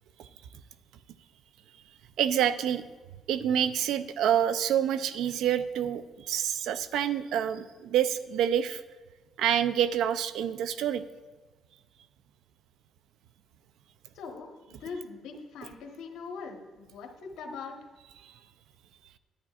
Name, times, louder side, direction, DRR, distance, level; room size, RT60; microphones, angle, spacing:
voice 1, 2.2-2.8 3.3-8.8 9.4-11.0, right 9 dB, 85° right, 13 dB, 0.4 m, -27 dB
voice 2, 14.1-17.8, left 4 dB, 90° left, 3 dB, 1.1 m, -41 dB
11.0 x 9.2 x 2.4 m, 1.3 s
cardioid pair, 90°, 0 cm